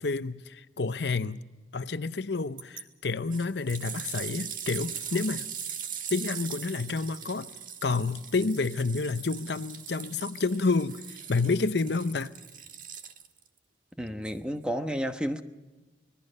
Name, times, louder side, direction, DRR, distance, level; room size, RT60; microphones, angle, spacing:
voice 1, 0.0-1.4 1.7-5.5 6.1-7.6 7.8-12.3, left 3 dB, 65° left, 0.7 m, -29 dB
sound 1, 2.6-2.8 3.3-13.5 14.2-14.3, right 8 dB, 45° right, 1.6 m, -40 dB
voice 2, 14.0-15.4, equal, 5° right, 1.1 m, -31 dB
26.0 x 20.5 x 5.4 m
head